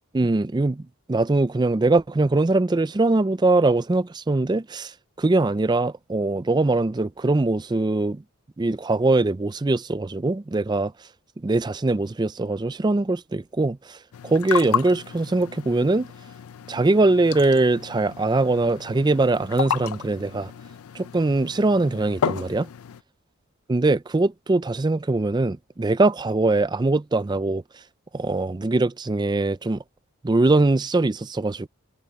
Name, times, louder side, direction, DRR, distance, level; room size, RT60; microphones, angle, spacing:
voice 1, 0.1-0.8 1.1-4.9 5.2-8.2 8.6-10.9 11.4-14.0 14.2-16.1 16.7-20.5 20.9-22.7 23.7-27.6 28.1-29.8 30.2-31.7, right 2 dB, 20° right, 0.4 m, -22 dB
sound 1, 14.1-23.0, left 8 dB, 80° left, 0.4 m, -32 dB
head